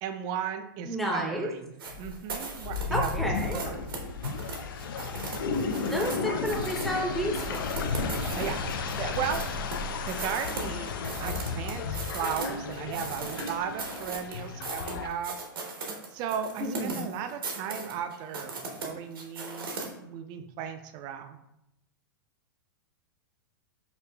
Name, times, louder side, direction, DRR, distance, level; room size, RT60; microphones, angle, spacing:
voice 1, 0.0-3.9 8.4-8.6 9.0-9.4 10.0-15.3 16.1-18.5 18.8-19.7 20.0-21.4, right 8 dB, 40° right, 7 dB, 0.4 m, -35 dB
voice 2, 0.8-1.5 2.9-3.6 5.9-7.6 16.6-17.1, equal, ahead, 0 dB, 0.6 m, -31 dB
sound 1, 1.8-6.2 6.4-6.9 7.3-9.8 10.1-12.5 12.7-19.8, right 4 dB, 85° right, 0.9 m, -38 dB
sound 2, 1.9-15.1, left 4 dB, 75° left, 0.4 m, -33 dB
4.8 x 2.4 x 2.2 m, 0.83 s
hypercardioid pair, 120°, 12 cm